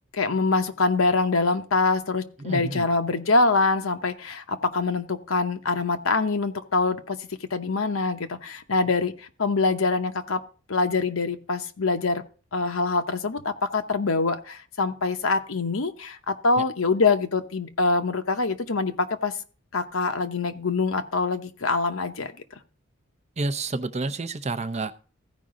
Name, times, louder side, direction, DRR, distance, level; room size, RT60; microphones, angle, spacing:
voice 1, 0.1-9.1 9.4-10.4 10.7-12.2 12.5-19.3 19.7-22.3, left 3 dB, 80° left, 7 dB, 0.9 m, -24 dB
voice 2, 2.4-2.9 16.6-16.7 23.4-24.9, right 3 dB, 30° right, 9 dB, 0.6 m, -29 dB
15.5 x 5.2 x 3.7 m, 0.36 s
head